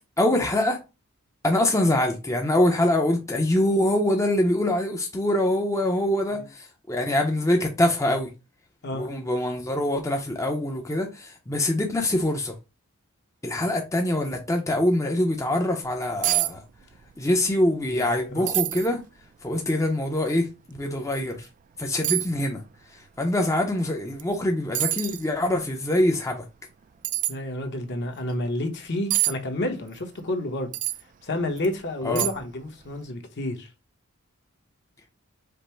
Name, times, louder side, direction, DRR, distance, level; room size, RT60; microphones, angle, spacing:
voice 1, 0.2-0.8 1.4-8.3 8.9-12.5 13.4-16.6 17.2-19.0 19.4-21.5 21.8-22.6 23.2-26.4 32.0-32.3, left 1 dB, 15° left, 0.6 m, -24 dB
sound 1, 15.9-16.0 16.2-16.5 16.8-17.4 17.7-17.8 18.5-18.9 19.5-19.6 21.1-21.3 22.0-22.3 24.2-24.3 24.7-25.2 27.0-27.3 29.1-29.3 30.7-31.0 31.6-31.7 32.1-32.6 32.8-33.0, right 16 dB, 35° right, 0.3 m, -26 dB
voice 2, 17.9-18.4 27.3-30.7 31.2-33.7, left 1 dB, 55° left, 1.0 m, -30 dB
5.2 x 2.0 x 4.3 m
head